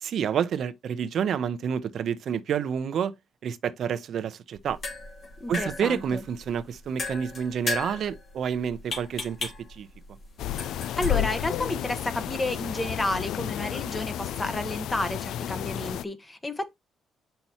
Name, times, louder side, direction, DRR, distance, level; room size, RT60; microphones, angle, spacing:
voice 1, 0.0-3.1 3.4-4.8 5.5-9.9, right 8 dB, 65° right, 0.7 m, -29 dB
sound 1, 4.5-13.2, left 3 dB, 55° left, 2.9 m, -38 dB
voice 2, 5.4-6.2 11.0-16.7, left 1 dB, 20° left, 1.2 m, -31 dB
sound 2, 10.4-16.0, left 11 dB, 80° left, 0.3 m, -31 dB
6.7 x 5.6 x 2.9 m
cardioid pair, 90°, 0 cm